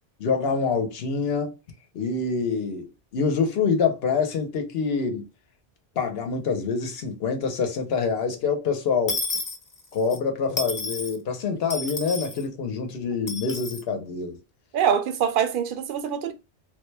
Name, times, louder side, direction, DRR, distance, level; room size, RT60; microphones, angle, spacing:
voice 1, 0.2-1.6 1.9-5.3 6.0-9.2 9.9-14.4, left 5 dB, 65° left, 1.0 m, -26 dB
Dishes pots and pans / Coin (dropping), 9.1-10.2 10.6-11.2 11.7-12.4 13.3-13.8, left 2 dB, 30° left, 0.3 m, -31 dB
voice 2, 14.7-16.3, right 8 dB, 60° right, 0.7 m, -24 dB
3.4 x 2.2 x 3.2 m
omnidirectional pair, 1.1 m